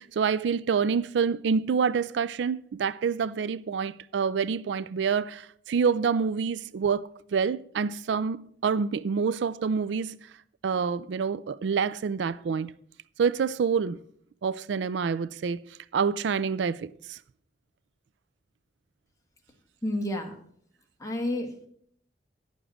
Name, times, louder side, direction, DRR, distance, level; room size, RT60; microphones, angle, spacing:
voice 1, 0.0-10.2 10.6-12.7 13.2-14.0 14.4-15.6 15.9-17.2, right 6 dB, 75° right, 0.4 m, -27 dB
voice 2, 19.8-20.4 21.0-21.7, left 1 dB, 20° left, 1.6 m, -30 dB
9.9 x 7.0 x 6.3 m
head